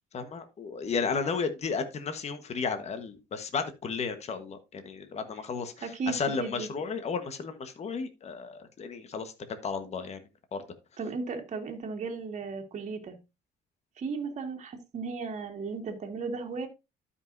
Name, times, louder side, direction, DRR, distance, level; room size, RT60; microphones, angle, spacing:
voice 1, 0.1-9.3 9.6-10.2 10.5-10.6, left 5 dB, 40° left, 8 dB, 1.2 m, -33 dB
voice 2, 5.8-6.7 11.0-13.2 14.0-16.7, right 4 dB, 45° right, 2 dB, 1.9 m, -35 dB
12.5 x 5.5 x 2.6 m, 0.25 s
cardioid pair, 110°, 17 cm